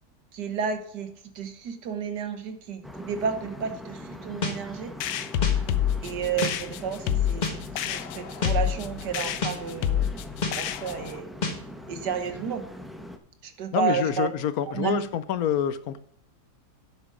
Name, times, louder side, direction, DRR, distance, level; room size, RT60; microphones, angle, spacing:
voice 1, 0.3-4.9 6.0-7.6 7.9-10.1 10.5-11.3 11.9-12.7 13.4-14.3 14.7-15.1, right 7 dB, 80° right, 8 dB, 1.8 m, -31 dB
sound 1, 2.8-13.2, equal, ahead, 0.4 m, -41 dB
sound 2, 4.4-4.6 5.4-5.6 6.4-6.6 7.4-7.6 8.4-8.6 9.4-9.6 10.4-10.6 11.4-11.6, left 4 dB, 30° left, 1.3 m, -27 dB
sound 3, 5.0-11.2, left 10 dB, 85° left, 1.3 m, -28 dB
voice 2, 13.7-16.0, left 9 dB, 70° left, 14 dB, 1.0 m, -27 dB
9.6 x 7.4 x 5.0 m, 0.65 s
omnidirectional pair, 1.8 m